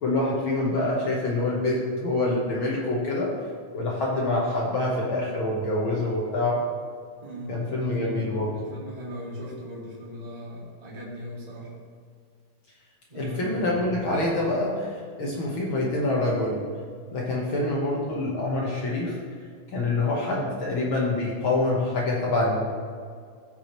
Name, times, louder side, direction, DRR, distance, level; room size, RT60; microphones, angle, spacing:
voice 1, 0.0-3.3 3.7-6.6 7.5-8.5 13.1-16.6 17.1-19.2 19.7-22.6, left 2 dB, 65° left, -4 dB, 1.3 m, -26 dB
voice 2, 7.2-11.7 13.1-13.9, equal, 20° right, -5 dB, 1.3 m, -39 dB
14.5 x 5.9 x 3.1 m, 2.1 s
omnidirectional pair, 3.8 m